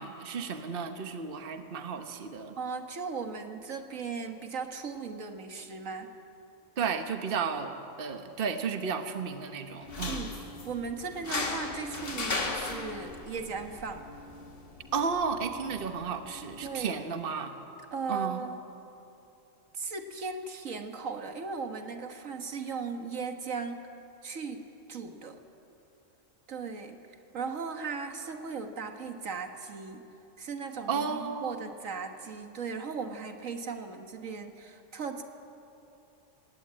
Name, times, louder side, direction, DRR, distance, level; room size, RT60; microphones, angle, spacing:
voice 1, 0.0-2.5 6.8-10.3 14.9-17.5 18.1-18.4 30.9-31.5, right 6 dB, 45° right, 7 dB, 1.2 m, -33 dB
voice 2, 2.6-6.1 10.1-10.4 10.6-14.1 16.6-17.0 17.9-18.6 19.7-23.9 24.2-24.6 24.9-25.4 26.5-27.0 27.3-30.1 30.4-35.2, right 5 dB, 80° right, 5 dB, 1.8 m, -37 dB
sound 1, 9.8-16.8, left 3 dB, 45° left, 1.8 m, -37 dB
20.0 x 18.0 x 8.8 m, 2.9 s
omnidirectional pair, 1.3 m